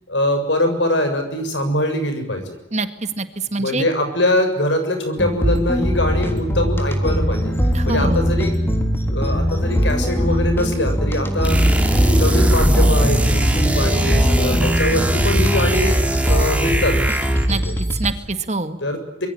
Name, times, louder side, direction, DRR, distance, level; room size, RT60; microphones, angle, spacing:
voice 1, 0.1-2.4 3.6-7.5 7.8-8.5 9.1-16.0 16.2-17.0 17.5-17.7 18.8-19.3, left 1 dB, 70° left, 7 dB, 7.1 m, -22 dB
voice 2, 3.2-3.9 7.7-8.3 17.5-18.8, right 3 dB, 40° right, 9 dB, 1.9 m, -25 dB
sound 1, 5.2-18.1, equal, 15° left, 3.4 m, -21 dB
sound 2, 11.4-17.6, right 1 dB, 5° right, 3.3 m, -19 dB
25.5 x 22.5 x 8.7 m, 0.89 s
head